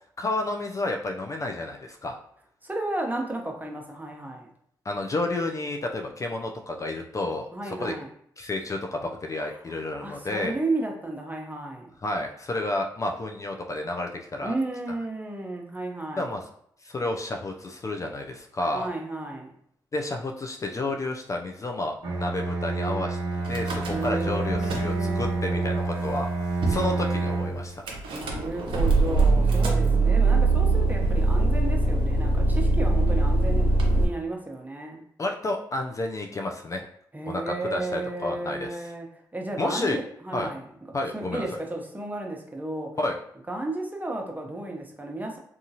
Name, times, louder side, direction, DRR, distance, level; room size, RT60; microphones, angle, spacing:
voice 1, 0.2-2.2 4.9-7.9 8.4-10.5 12.0-14.5 16.2-16.4 16.8-18.9 19.9-23.2 23.5-27.8 35.2-36.9 37.3-38.9 39.6-40.0 40.3-40.5 40.9-41.4 43.0-43.2, left 2 dB, 35° left, 3 dB, 0.4 m, -30 dB
voice 2, 2.6-4.5 7.5-8.1 10.0-11.9 14.4-16.3 18.7-19.5 23.8-25.7 28.1-35.0 37.1-39.1 39.3-40.7 41.1-42.9 43.5-45.4, right 2 dB, 20° right, 1 dB, 0.8 m, -33 dB
Bowed string instrument, 22.0-27.7, right 3 dB, 50° right, 1.1 m, -28 dB
Car / Engine starting / Idling, 23.5-24.2 24.5-25.3 26.0-26.1 26.2-26.3 26.6-26.9 27.9-34.0, right 2 dB, 80° right, 0.6 m, -22 dB
2.8 x 2.3 x 2.7 m, 0.68 s
supercardioid pair, 50°, 9 cm